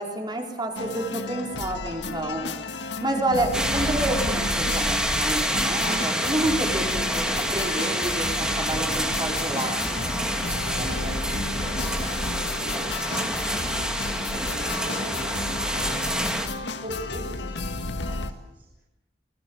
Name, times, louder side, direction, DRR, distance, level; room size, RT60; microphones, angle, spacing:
voice 1, 0.0-2.4 3.0-10.1, right 1 dB, 25° right, 1 dB, 4.6 m, -29 dB
sound 1, 0.8-18.3, left 2 dB, 90° left, 1.9 m, -32 dB
sound 2, 3.5-16.5, equal, 5° right, 2.4 m, -27 dB
voice 2, 10.7-12.6 13.2-16.3 16.7-18.8, right 1 dB, 50° right, -4 dB, 7.9 m, -42 dB
30.0 x 21.0 x 7.2 m, 0.95 s
head